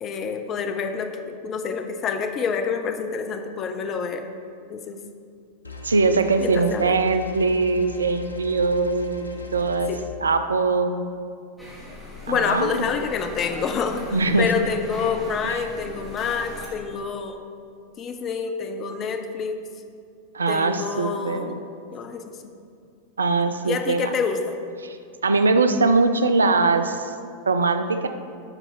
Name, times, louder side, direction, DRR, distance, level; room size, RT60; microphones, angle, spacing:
voice 1, 0.0-4.2 4.7-5.0 6.4-6.9 9.9-10.0 12.3-14.1 14.4-17.4 18.0-19.6 20.5-21.6 21.9-22.5 23.6-24.6, left 6 dB, 30° left, 6 dB, 0.5 m, -27 dB
sound 1, 5.6-10.0, left 2 dB, 80° left, 0.5 m, -40 dB
voice 2, 5.8-9.9 10.2-11.0 12.3-12.8 14.1-14.5 15.4-15.6 20.3-21.6 23.2-24.1 24.8-25.0 25.2-27.1 27.5-28.1, right 3 dB, 75° right, 9 dB, 0.4 m, -21 dB
sound 2, 11.6-16.7, left 1 dB, ahead, 1.6 m, -39 dB
6.7 x 4.2 x 4.4 m, 2.3 s
figure-of-eight pair, 90°, 0 cm